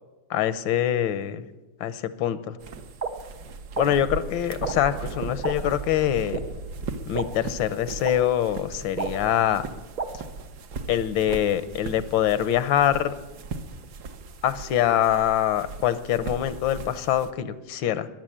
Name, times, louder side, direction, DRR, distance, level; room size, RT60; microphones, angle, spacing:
voice 1, 0.3-1.4 1.8-2.6 3.8-6.4 7.1-9.7 10.9-13.1 14.4-18.1, left 11 dB, 80° left, 14 dB, 1.5 m, -24 dB
sound 1, 2.6-17.3, right 4 dB, 60° right, 1.4 m, -38 dB
sound 2, 3.0-3.1 3.7-3.8 4.6-4.7 5.4-5.5 6.3-6.4 7.1-7.2 8.0-8.1 9.0-9.1 10.0-10.1, right 5 dB, 35° right, 0.8 m, -28 dB
14.0 x 11.0 x 8.7 m, 1.2 s
omnidirectional pair, 2.1 m